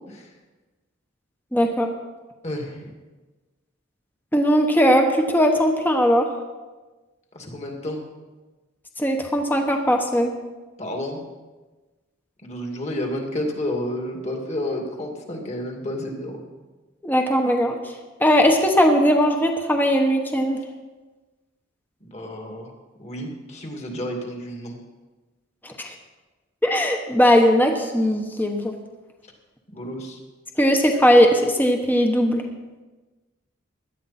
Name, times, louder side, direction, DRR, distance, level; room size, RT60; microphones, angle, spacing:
voice 1, 1.5-1.9 4.3-6.3 9.0-10.4 17.0-17.9 18.2-20.6 25.6-25.9 26.6-28.7 30.6-32.4, equal, 10° left, 3 dB, 1.1 m, -19 dB
voice 2, 2.4-2.9 7.3-8.0 10.8-11.2 12.4-16.4 22.0-22.7 23.0-24.8 29.7-30.2, left 1 dB, 35° left, 1 dB, 2.4 m, -31 dB
17.5 x 12.0 x 4.3 m, 1.2 s
head